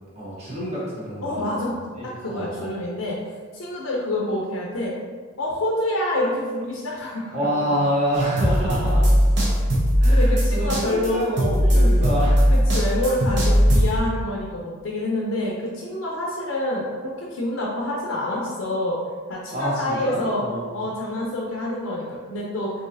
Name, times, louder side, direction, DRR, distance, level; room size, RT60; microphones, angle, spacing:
voice 1, 0.1-1.5 2.0-2.7 7.3-9.2 10.0-12.5 19.5-20.7, equal, 30° right, -7 dB, 0.9 m, -27 dB
voice 2, 1.2-1.8 2.0-3.2 3.5-4.9 5.4-7.7 10.1-11.2 11.6-12.1 12.5-19.0 19.3-20.4 20.7-22.7, left 1 dB, 75° left, -3 dB, 0.5 m, -27 dB
sound 1, 8.1-14.0, equal, 55° right, 0.8 m, -18 dB
3.9 x 2.7 x 2.6 m, 1.6 s
head